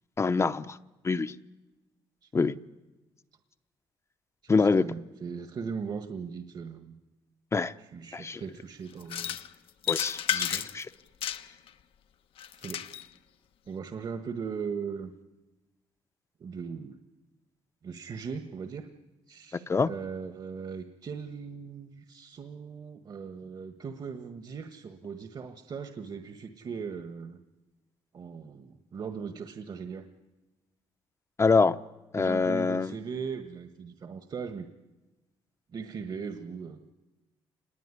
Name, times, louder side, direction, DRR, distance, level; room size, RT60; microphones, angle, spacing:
voice 1, 0.2-0.8 1.0-1.3 2.3-2.5 4.5-4.9 7.5-7.7 8.1-8.4 9.9-10.9 19.5-19.9 31.4-31.8 32.1-32.9, left 4 dB, 30° left, 0.8 m, -25 dB
voice 2, 4.4-7.0 7.8-9.4 10.3-10.7 12.5-12.9 13.7-15.1 16.4-17.0 17.8-18.9 19.3-27.4 28.1-30.1 32.2-34.7 35.7-36.9, right 6 dB, 50° right, 1.6 m, -39 dB
sound 1, 9.0-9.5 9.8-10.8 11.2-11.7 12.4-13.1, left 10 dB, 70° left, 1.1 m, -32 dB
25.5 x 20.0 x 9.9 m
cardioid pair, 80°, 9 cm